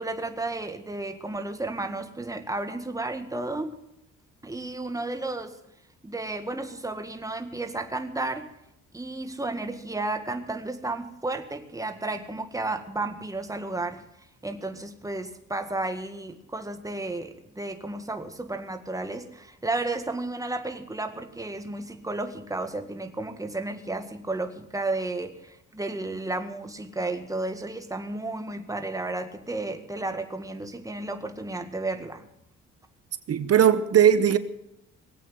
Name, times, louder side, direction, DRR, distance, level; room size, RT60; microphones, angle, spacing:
voice 1, 0.0-3.7 4.4-5.6 6.0-8.5 8.9-14.0 14.4-32.3, right 2 dB, 10° right, 1.9 m, -32 dB
voice 2, 33.3-34.4, right 9 dB, 55° right, 1.0 m, -19 dB
20.5 x 8.5 x 7.9 m
cardioid pair, 90°, 30 cm